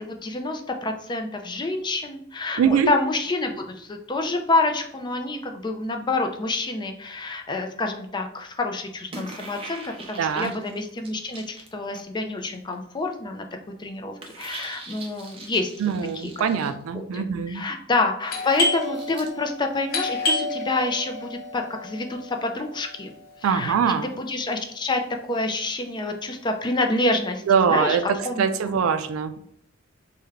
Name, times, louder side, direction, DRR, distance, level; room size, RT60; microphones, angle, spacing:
voice 1, 0.0-13.4 13.8-15.7 16.2-16.3 16.6-23.1 23.4-25.0 25.3-28.8, left 2 dB, 20° left, 4 dB, 0.4 m, -28 dB
voice 2, 2.6-2.9 10.2-10.5 15.8-17.7 23.4-24.1 27.5-29.4, right 7 dB, 75° right, 10 dB, 0.3 m, -23 dB
sound 1, 9.1-12.2 12.5-12.7 14.2-16.7 18.3-19.3, right 2 dB, 25° right, 0.5 m, -42 dB
Doorbell, 18.3-23.7, left 2 dB, 50° left, 0.8 m, -30 dB
3.2 x 2.2 x 3.5 m, 0.70 s
head